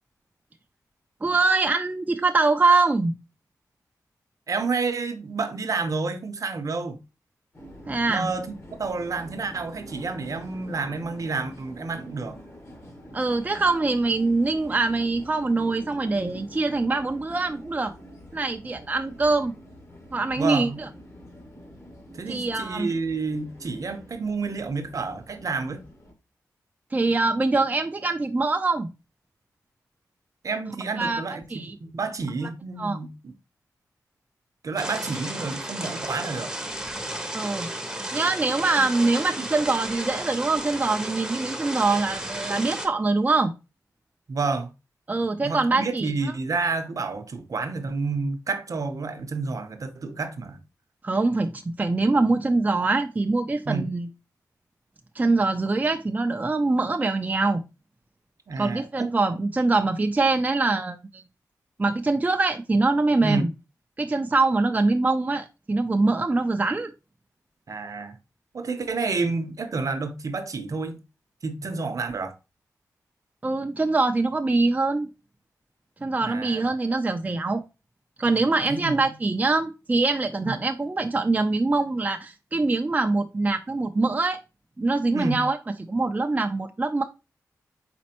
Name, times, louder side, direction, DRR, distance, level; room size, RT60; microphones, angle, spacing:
voice 1, 1.2-3.1 7.9-8.3 13.1-17.9 18.3-19.5 20.1-20.9 22.3-22.9 26.9-28.9 31.0-31.2 31.5-31.8 32.4-32.5 32.8-33.0 37.3-37.7 38.1-43.5 45.1-46.1 51.0-54.1 55.2-57.6 58.6-61.2 61.8-63.5 64.0-66.9 73.4-75.1 76.0-77.6 78.2-84.4 84.8-85.6 85.9-87.0, right 3 dB, 25° right, 0.5 m, -23 dB
voice 2, 4.5-7.0 8.1-12.4 20.4-20.8 22.2-25.8 30.4-31.4 31.8-33.3 34.6-36.5 44.3-44.7 45.4-50.6 53.7-53.9 58.5-59.1 63.2-63.4 67.7-68.1 68.5-71.0 71.4-72.3 76.2-76.7 78.7-79.0 80.4-80.5 85.1-85.4, right 4 dB, 60° right, 0.8 m, -29 dB
sound 1, 7.5-26.1, equal, 40° left, 1.6 m, -46 dB
sound 2, 34.8-42.9, right 1 dB, 10° right, 0.8 m, -33 dB
4.2 x 4.2 x 2.9 m
cardioid pair, 70°, 7 cm